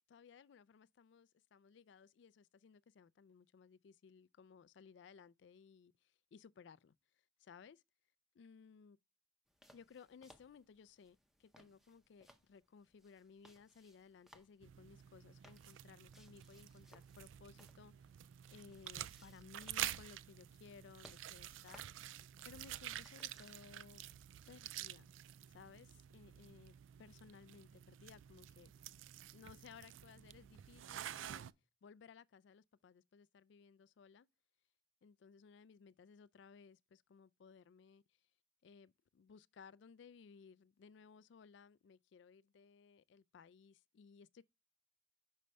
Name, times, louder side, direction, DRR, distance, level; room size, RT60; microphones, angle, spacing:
voice 1, 0.0-6.9 7.4-7.8 8.3-9.0 9.7-17.9 18.5-21.9 22.4-24.0 24.5-25.1 25.5-28.7 29.3-31.5 31.8-34.3 35.0-38.0 38.6-44.4, left 6 dB, 65° left, 0.3 m, -60 dB
sound 1, 9.5-23.8, equal, ahead, 0.6 m, -68 dB
sound 2, 14.6-31.5, right 12 dB, 80° right, 0.3 m, -49 dB
6.5 x 5.2 x 3.3 m
head